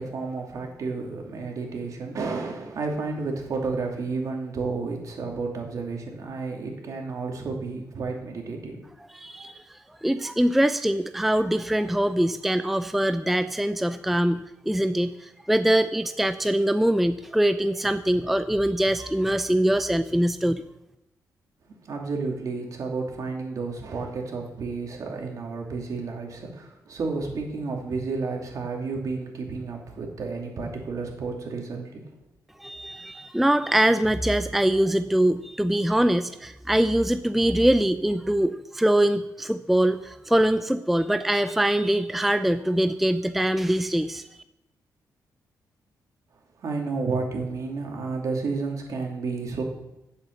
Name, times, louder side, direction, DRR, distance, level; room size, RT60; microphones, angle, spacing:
voice 1, 0.0-8.8 21.6-32.2 46.6-49.6, right 4 dB, 55° right, 1 dB, 2.7 m, -31 dB
voice 2, 9.1-20.6 32.6-44.3, right 1 dB, 5° right, 10 dB, 0.4 m, -23 dB
9.8 x 8.0 x 8.2 m, 0.91 s
cardioid pair, 130°, 7 cm